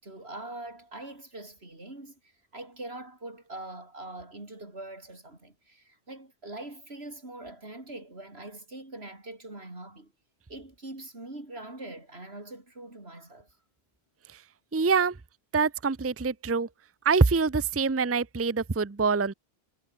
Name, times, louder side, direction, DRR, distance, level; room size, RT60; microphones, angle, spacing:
voice 1, 0.0-10.1 10.5-13.6, right 2 dB, 80° right, 5.4 m, -43 dB
voice 2, 14.7-15.2 15.5-16.7 17.0-19.3, right 4 dB, 15° right, 0.5 m, -25 dB
omnidirectional pair, 1.1 m